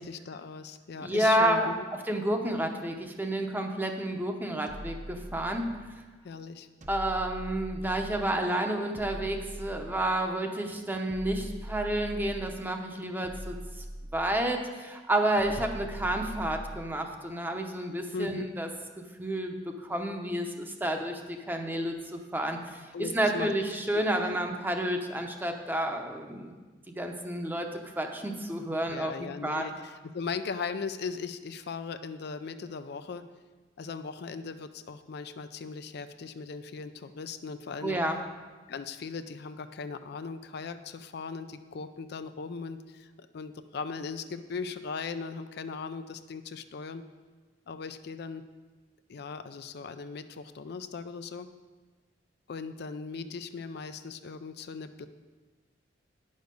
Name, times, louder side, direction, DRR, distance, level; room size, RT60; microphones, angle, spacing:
voice 1, 0.0-1.8 6.2-6.7 18.1-18.5 22.9-23.5 28.9-33.2 33.8-38.0 38.7-47.0 47.7-48.4 49.1-51.5 52.5-55.1, left 5 dB, 60° left, 10 dB, 0.4 m, -38 dB
voice 2, 1.0-5.6 6.9-13.6 14.1-18.7 19.2-19.6 19.8-26.5 27.0-27.7 28.0-29.7 37.8-38.2, right 1 dB, 10° right, 4 dB, 0.8 m, -30 dB
sound 1, 4.7-6.0 6.8-8.4 8.9-10.4 11.1-12.7 13.2-14.6 15.4-17.0, equal, 45° right, 0.8 m, -42 dB
9.4 x 6.5 x 5.2 m, 1.3 s
head